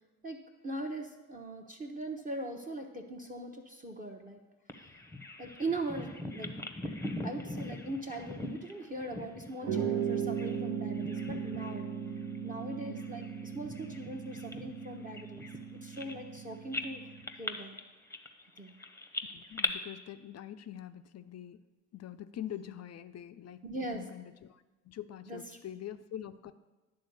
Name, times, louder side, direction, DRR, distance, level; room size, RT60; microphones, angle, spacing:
voice 1, 0.2-4.4 4.8-4.9 5.4-6.5 7.2-11.9 12.4-15.5 15.7-17.0 17.4-17.7 18.6-18.8 23.6-24.0 25.3-25.6, right 2 dB, 20° right, 4 dB, 0.9 m, -40 dB
Bird vocalization bird call bird song, 4.7-10.7 10.9-11.8 12.2-12.4 13.0-16.4 16.7-19.7, left 2 dB, 5° left, 0.9 m, -41 dB
sound 1, 9.6-17.3, right 7 dB, 50° right, 1.0 m, -37 dB
voice 2, 19.3-21.6 21.9-23.6 23.9-26.5, left 11 dB, 40° left, 11 dB, 0.5 m, -44 dB
10.5 x 3.8 x 6.8 m, 1.1 s
hypercardioid pair, 55°, 43 cm